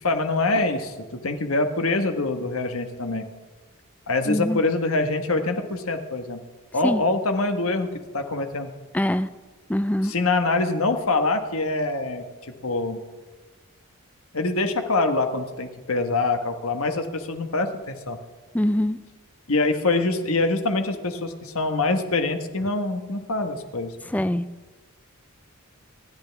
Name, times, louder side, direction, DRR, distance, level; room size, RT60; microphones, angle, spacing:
voice 1, 0.0-3.2 4.1-6.4 6.7-7.9 8.1-8.7 10.0-12.2 12.6-13.0 14.3-18.2 19.5-23.9, left 3 dB, 70° left, 6 dB, 1.3 m, -24 dB
voice 2, 4.3-4.6 6.8-7.0 8.9-9.3 9.7-10.1 18.5-19.0 24.1-24.5, left 1 dB, 5° left, 13 dB, 0.4 m, -23 dB
25.5 x 11.0 x 3.5 m, 1.3 s
head